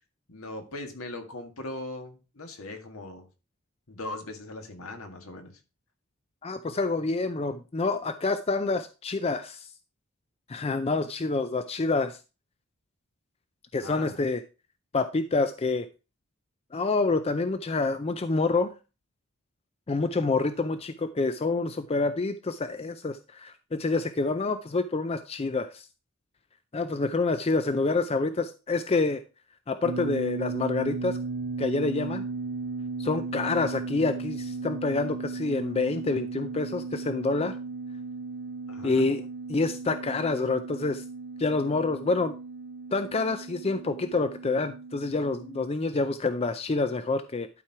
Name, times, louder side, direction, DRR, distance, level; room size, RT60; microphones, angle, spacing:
voice 1, 0.3-3.3 3.9-5.6 13.8-14.2 38.7-39.1, left 2 dB, 70° left, 5 dB, 1.8 m, -39 dB
voice 2, 6.4-9.7 10.5-12.2 13.7-14.4 14.9-15.9 16.7-18.7 19.9-25.9 26.7-29.2 29.7-31.2 31.6-32.2 33.0-37.6 38.8-39.2 39.5-41.0 41.4-42.3 42.9-47.5, left 3 dB, 25° left, 10 dB, 0.4 m, -27 dB
sound 1, 29.8-45.7, right 4 dB, 50° right, 0.6 m, -36 dB
12.0 x 4.5 x 4.7 m, 0.32 s
head